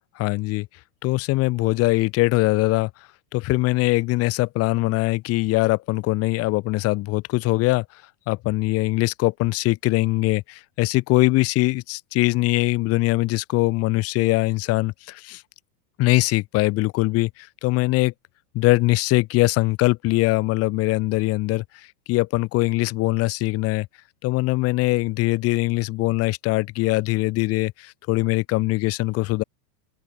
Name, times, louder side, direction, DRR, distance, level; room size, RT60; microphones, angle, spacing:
voice 1, 0.2-0.7 1.0-2.9 3.3-7.9 8.3-15.4 16.0-18.1 18.5-21.6 22.1-23.9 24.2-29.4, left 20 dB, 30° left, 3.5 m, -22 dB
open air
supercardioid pair, 170°, 49 cm